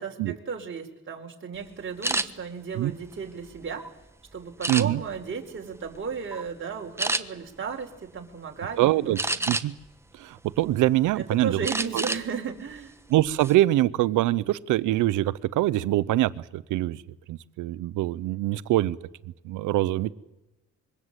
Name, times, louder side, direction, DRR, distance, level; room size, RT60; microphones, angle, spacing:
voice 1, 0.0-3.8 4.3-9.2 11.2-12.9, right 6 dB, 40° right, 2 dB, 4.5 m, -34 dB
sound 1, 2.0-2.3 2.9-3.9 4.6-5.2 5.7-6.0 6.3-6.5 7.0-7.2 9.2-9.9 10.4-11.1 11.6-12.2 12.6-12.8 13.2-13.5, right 2 dB, 10° right, 1.3 m, -29 dB
voice 2, 4.7-5.0 8.8-9.2 9.5-9.7 10.2-11.6 11.9-12.0 13.1-17.0 17.3-19.0 19.4-20.1, right 15 dB, 90° right, 17 dB, 0.9 m, -24 dB
26.0 x 23.0 x 8.3 m, 0.99 s
cardioid pair, 90°, 30 cm